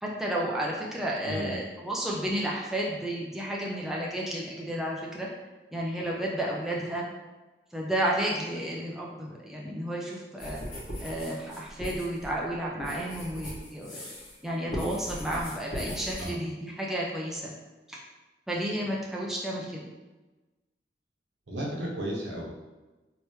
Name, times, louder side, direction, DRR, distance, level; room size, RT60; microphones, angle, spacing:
voice 1, 0.0-5.3 5.7-7.0 7.7-10.6 11.0-14.1 14.4-17.5 17.9-18.0 18.5-19.9, right 1 dB, ahead, -4 dB, 0.4 m, -32 dB
voice 2, 1.2-1.6 16.2-16.4 21.5-22.5, right 1 dB, 85° right, -3 dB, 0.8 m, -33 dB
sound 1, 10.4-14.4 14.7-16.3, equal, 65° left, 1.5 m, -39 dB
3.3 x 2.9 x 3.0 m, 1.2 s
head